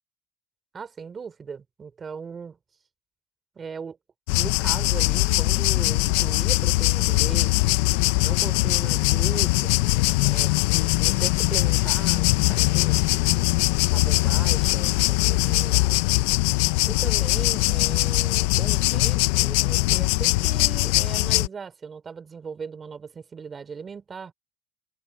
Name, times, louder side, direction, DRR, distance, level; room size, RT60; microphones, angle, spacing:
voice 1, 0.7-2.6 3.6-4.0 4.3-7.7 8.2-10.0 10.3-13.5 13.9-16.3 16.9-24.3, right 6 dB, 25° right, 3.7 m, -38 dB
sound 1, 4.3-21.5, left 21 dB, 90° left, 0.5 m, -21 dB
cardioid pair, 135°, 0 cm